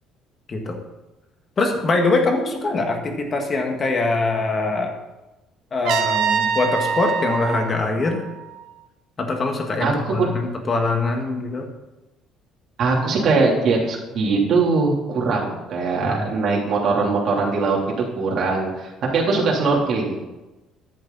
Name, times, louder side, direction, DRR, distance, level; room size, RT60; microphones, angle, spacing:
voice 1, 0.5-0.8 1.6-4.9 5.7-8.2 9.2-11.7 16.0-16.3, left 3 dB, 25° left, 3 dB, 1.7 m, -23 dB
Trumpet, 5.8-8.8, right 7 dB, 60° right, 1.0 m, -25 dB
voice 2, 9.8-10.3 12.8-17.8 18.1-20.2, right 4 dB, 45° right, -2 dB, 3.4 m, -21 dB
13.5 x 11.0 x 4.2 m, 1.1 s
cardioid pair, 165°, 0 cm